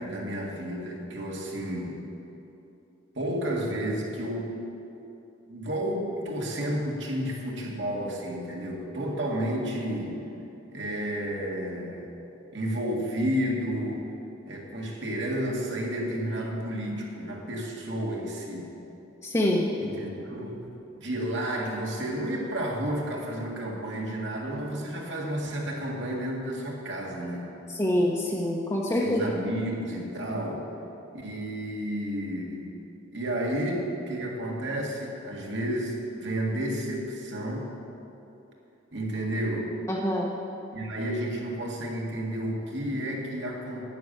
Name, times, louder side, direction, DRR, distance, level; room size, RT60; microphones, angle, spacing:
voice 1, 0.0-2.0 3.2-4.6 5.5-10.2 10.7-12.1 12.5-14.0 14.5-18.7 19.8-20.7 21.0-27.5 29.0-30.7 31.1-32.7 33.1-37.7 38.9-39.7 40.7-43.9, right 1 dB, 70° right, -1 dB, 1.8 m, -31 dB
voice 2, 19.2-19.7 27.7-29.3 39.9-40.3, left 1 dB, 15° left, -3 dB, 0.9 m, -25 dB
9.3 x 6.9 x 8.8 m, 2.9 s
head